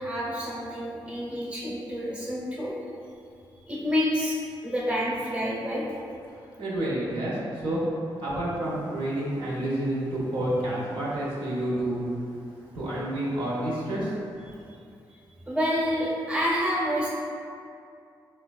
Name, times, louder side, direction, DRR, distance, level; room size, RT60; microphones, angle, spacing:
voice 1, 0.0-2.7 3.7-5.8 15.5-17.1, equal, 10° right, -6 dB, 0.8 m, -28 dB
voice 2, 6.5-7.9 8.2-12.1 12.7-14.1, right 1 dB, 75° right, -7 dB, 0.8 m, -29 dB
3.8 x 2.2 x 2.3 m, 2.4 s
cardioid pair, 70°, 9 cm